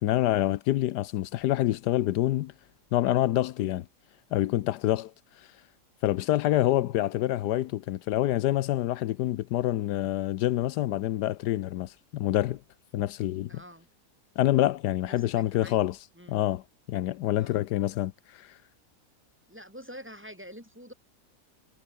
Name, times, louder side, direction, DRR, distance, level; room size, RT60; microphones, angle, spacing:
voice 1, 0.0-2.5 2.9-3.8 4.3-5.1 5.4-5.5 6.0-12.6 12.9-13.6 14.4-16.0 16.3-16.6 16.9-18.6, left 14 dB, 85° left, 1.2 m, -26 dB
voice 2, 13.5-13.9 15.2-15.8 16.2-16.5 17.3-17.6 19.5-20.9, equal, 5° right, 8.0 m, -46 dB
omnidirectional pair, 1.7 m